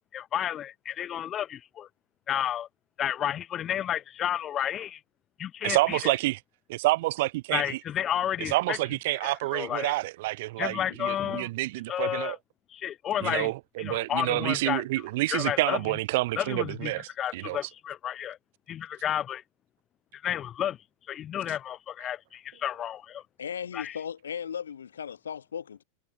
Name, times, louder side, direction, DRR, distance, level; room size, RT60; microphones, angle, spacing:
voice 1, 0.1-1.9 2.3-2.7 3.0-5.0 5.4-6.1 7.5-8.8 9.2-10.0 10.6-11.5 11.9-12.4 12.7-13.5 13.8-14.9 15.3-16.0 16.4-18.4 18.7-19.4 20.2-20.8 21.1-23.2 23.7-24.0, left 10 dB, 30° left, 2.2 m, -31 dB
voice 2, 5.6-6.4 6.7-7.8 8.5-12.4 13.2-17.6, right 19 dB, 50° right, 1.4 m, -28 dB
voice 3, 23.4-25.8, left 8 dB, 70° left, 3.0 m, -36 dB
figure-of-eight pair, 90°, 0 cm